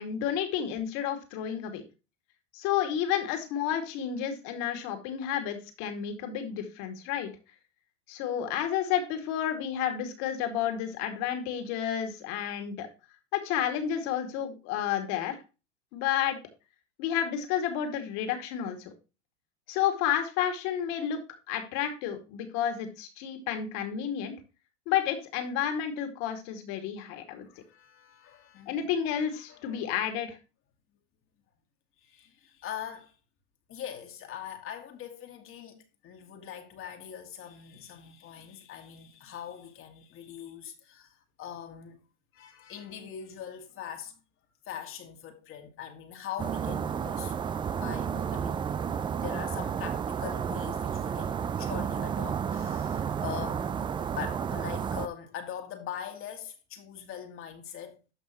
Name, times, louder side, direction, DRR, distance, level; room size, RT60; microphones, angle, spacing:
voice 1, 0.0-1.8 2.5-7.3 8.1-12.9 13.3-15.4 15.9-16.4 17.0-18.9 19.7-21.2 21.5-24.3 24.9-27.5 28.7-30.4, left 9 dB, 50° left, 2.4 m, -31 dB
voice 2, 27.1-28.9 29.5-29.9 32.0-33.1 33.7-42.0 42.3-44.2 44.7-47.3 47.7-48.6 49.2-53.8 54.2-58.0, left 9 dB, 35° left, 1.9 m, -42 dB
sound 1, 46.4-55.1, right 7 dB, 15° right, 0.4 m, -31 dB
13.0 x 5.5 x 3.0 m
hypercardioid pair, 105°, 35 cm